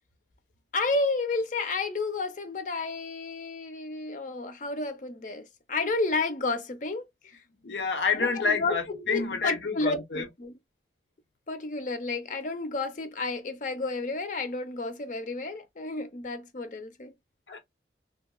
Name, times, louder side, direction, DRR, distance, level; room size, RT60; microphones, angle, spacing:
voice 1, 0.7-7.0 8.2-10.6 11.5-17.1, left 3 dB, 45° left, 0.6 m, -31 dB
voice 2, 7.6-10.3 17.5-17.6, left 4 dB, 85° left, 0.8 m, -28 dB
2.8 x 2.7 x 2.2 m
head